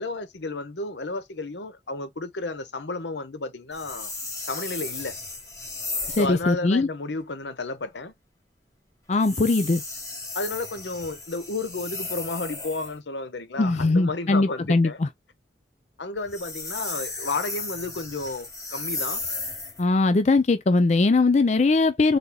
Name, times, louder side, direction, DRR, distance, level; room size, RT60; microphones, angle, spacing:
voice 1, 0.0-4.1 4.5-5.2 6.1-8.1 10.3-15.0 16.0-19.2, left 3 dB, 85° left, 0.8 m, -32 dB
sound 1, 3.7-6.4 9.1-13.0 16.2-19.8, left 3 dB, 20° left, 1.4 m, -34 dB
voice 2, 6.2-6.9 9.1-9.8 13.6-15.1 19.8-22.2, left 3 dB, 40° left, 0.4 m, -20 dB
3.9 x 3.4 x 2.8 m
head